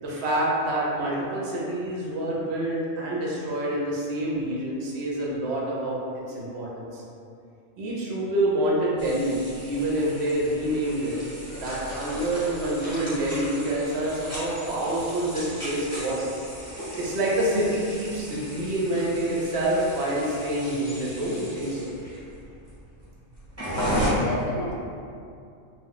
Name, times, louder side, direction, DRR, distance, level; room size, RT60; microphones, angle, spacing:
voice 1, 0.0-6.0 6.3-7.0 7.8-9.4 9.6-11.1 11.6-16.3 17.0-21.9, right 1 dB, 60° right, -5 dB, 0.8 m, -27 dB
sound 1, 9.0-24.1, right 1 dB, 15° right, 0.8 m, -36 dB
voice 2, 23.7-24.7, left 2 dB, 70° left, -4 dB, 0.9 m, -31 dB
2.4 x 2.3 x 3.3 m, 2.5 s
omnidirectional pair, 1.4 m